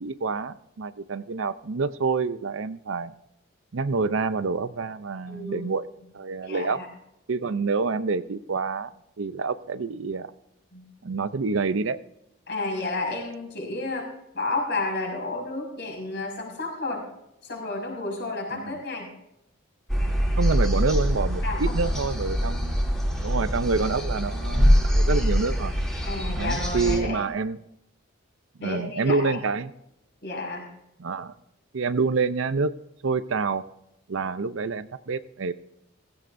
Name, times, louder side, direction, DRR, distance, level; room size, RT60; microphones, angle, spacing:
voice 1, 0.0-3.1 3.7-5.9 6.1-6.8 7.3-8.9 9.2-10.3 11.0-12.0 18.5-18.7 20.4-22.8 23.2-25.7 26.3-27.6 28.6-29.7 31.0-31.3 31.7-32.7 33.0-33.6 34.1-35.5, right 4 dB, 65° right, 14 dB, 0.6 m, -27 dB
voice 2, 5.3-5.7 6.4-6.9 10.7-10.8 12.5-14.1 14.3-17.0 17.4-19.1 21.4-22.0 26.0-27.2 28.6-29.4 30.2-30.6, left 2 dB, 50° left, 0 dB, 5.8 m, -31 dB
sound 1, 19.9-27.0, equal, 5° left, 2.9 m, -24 dB
17.0 x 16.0 x 2.6 m, 0.85 s
head